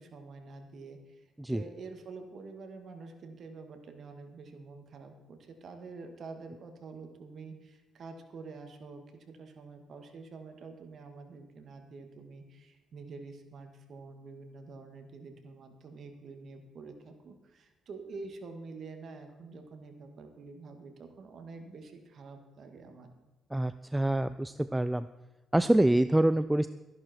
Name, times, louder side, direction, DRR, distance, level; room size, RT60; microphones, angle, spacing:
voice 1, 0.0-1.2 1.5-23.1, right 4 dB, 55° right, 5 dB, 2.1 m, -47 dB
voice 2, 23.5-25.1 25.5-26.7, right 1 dB, 10° right, 13 dB, 0.4 m, -26 dB
14.0 x 11.0 x 4.6 m, 1.1 s
cardioid pair, 90°, 0 cm